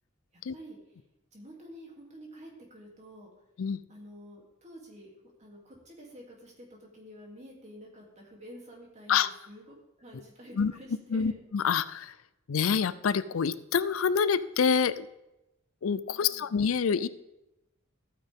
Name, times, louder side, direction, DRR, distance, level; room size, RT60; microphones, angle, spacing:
voice 1, 1.3-3.3 3.9-5.1 5.4-9.6 10.0-11.3 16.1-16.5, equal, 35° right, -1 dB, 2.8 m, -49 dB
voice 2, 11.1-12.2 12.5-15.1 15.8-17.1, left 6 dB, 75° left, 16 dB, 0.5 m, -27 dB
14.0 x 9.1 x 3.6 m, 0.93 s
head